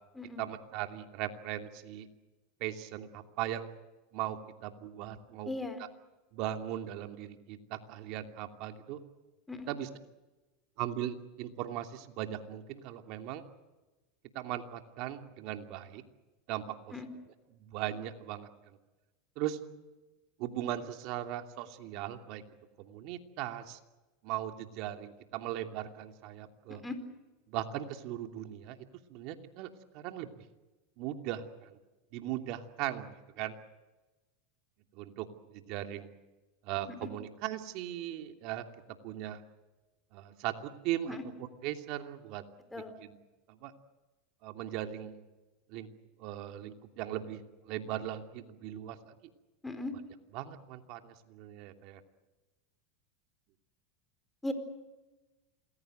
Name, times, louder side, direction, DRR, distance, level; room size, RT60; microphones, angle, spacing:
voice 1, 0.4-2.1 2.6-3.7 4.1-5.5 6.3-9.0 9.7-9.9 10.8-13.4 14.3-16.0 16.5-16.8 17.6-18.5 19.4-19.6 20.4-22.4 22.8-23.8 24.2-26.8 27.5-28.8 29.1-29.7 29.9-30.3 31.0-31.4 32.1-33.5 34.9-36.1 36.6-38.6 39.0-39.4 40.1-41.2 41.6-42.4 43.0-43.1 43.5-43.7 44.4-45.2 45.7-45.9 46.2-49.1 50.3-52.0, right 12 dB, 55° right, 5 dB, 2.8 m, -38 dB
voice 2, 5.5-5.8 9.5-9.7 16.9-17.1 26.8-27.0 36.9-37.1 41.1-41.2 42.7-42.9 49.6-49.9 54.4-54.5, left 2 dB, 10° left, 9 dB, 4.4 m, -38 dB
28.0 x 20.5 x 7.9 m, 1.1 s
supercardioid pair, 120°, 0 cm